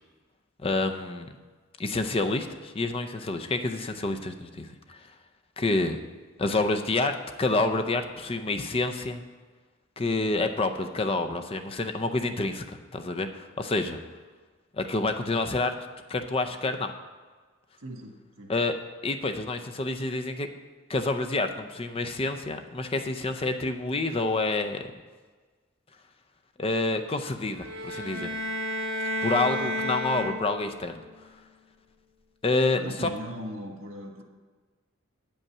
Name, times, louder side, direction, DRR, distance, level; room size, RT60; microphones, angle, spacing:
voice 1, 0.6-1.3 1.8-5.1 5.6-6.0 6.4-9.2 10.0-14.0 14.7-15.7 16.1-16.9 18.5-18.7 19.0-20.5 20.9-24.8 26.6-28.3 29.2-30.9 32.4-33.1, left 2 dB, 25° left, 6 dB, 0.5 m, -28 dB
voice 2, 17.8-18.5 29.6-29.7 32.7-34.2, equal, 90° right, 2 dB, 1.6 m, -39 dB
sound 1, 27.6-30.8, equal, 65° right, 2.1 m, -31 dB
8.6 x 5.4 x 7.2 m, 1.4 s
head